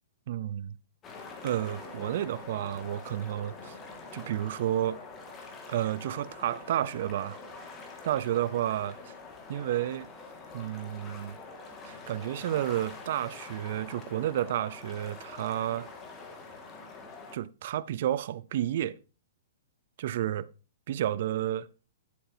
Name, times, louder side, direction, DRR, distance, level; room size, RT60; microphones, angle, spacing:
voice 1, 0.3-0.8 1.4-3.7 4.1-5.0 5.7-7.4 8.0-9.0 9.5-10.1 10.5-11.4 11.9-15.9 17.3-19.0 20.0-20.5 20.9-21.7, right 12 dB, 55° right, 0.5 m, -31 dB
sound 1, 1.0-17.4, left 4 dB, 20° left, 1.9 m, -45 dB
10.5 x 8.4 x 2.7 m
hypercardioid pair, 140°, 0 cm